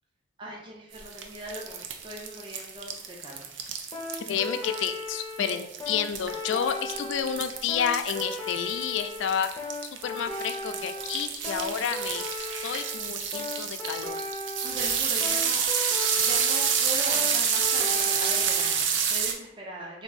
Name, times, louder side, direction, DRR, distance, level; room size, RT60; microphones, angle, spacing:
voice 1, 0.4-3.7 14.4-15.7 16.2-20.0, right 1 dB, 25° right, -2 dB, 0.5 m, -40 dB
sound 1, 0.9-19.3, right 7 dB, 85° right, 0.5 m, -29 dB
sound 2, 3.9-18.8, left 2 dB, 15° left, 0.6 m, -37 dB
voice 2, 4.3-9.5 10.0-12.3 12.6-14.2, left 8 dB, 80° left, 9 dB, 0.3 m, -30 dB
3.6 x 2.6 x 4.0 m, 0.89 s
head